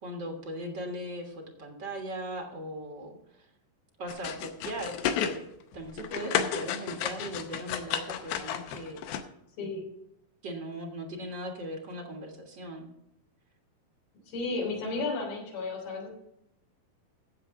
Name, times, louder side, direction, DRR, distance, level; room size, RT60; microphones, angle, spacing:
voice 1, 0.0-3.5 4.0-5.5 5.7-9.0 9.6-9.8 10.4-12.9, equal, 80° right, 2 dB, 1.0 m, -39 dB
sound 1, 4.1-5.4 5.7-9.2, left 9 dB, 85° left, 2.9 m, -32 dB
voice 2, 14.3-16.1, left 3 dB, 65° left, -1 dB, 5.3 m, -33 dB
14.5 x 7.9 x 3.7 m, 0.79 s
omnidirectional pair, 4.6 m